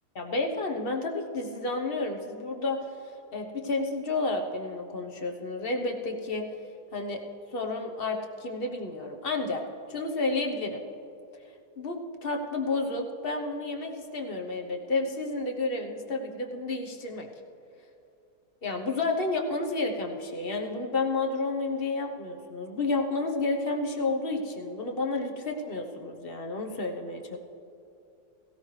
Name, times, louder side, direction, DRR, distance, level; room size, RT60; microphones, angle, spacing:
voice 1, 0.1-2.8 3.3-6.5 6.9-7.2 7.5-9.6 9.9-10.8 11.8-17.3 18.6-27.4, left 3 dB, 40° left, 2 dB, 1.1 m, -31 dB
18.0 x 15.5 x 3.2 m, 2.7 s
omnidirectional pair, 1.7 m